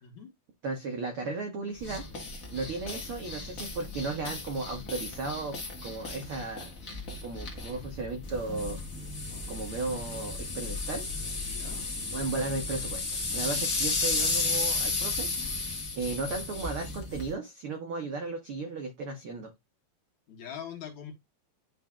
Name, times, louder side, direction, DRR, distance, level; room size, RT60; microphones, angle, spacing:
voice 1, 0.0-0.3 11.4-11.8 20.3-21.1, left 8 dB, 65° left, 2.3 m, -42 dB
voice 2, 0.6-2.0 2.5-6.7 7.2-8.8 9.5-11.3 12.1-15.5 15.9-19.5, right 3 dB, 90° right, 1.2 m, -35 dB
sound 1, 1.8-17.3, left 3 dB, 40° left, 1.1 m, -34 dB
11.5 x 3.9 x 2.3 m
omnidirectional pair, 4.1 m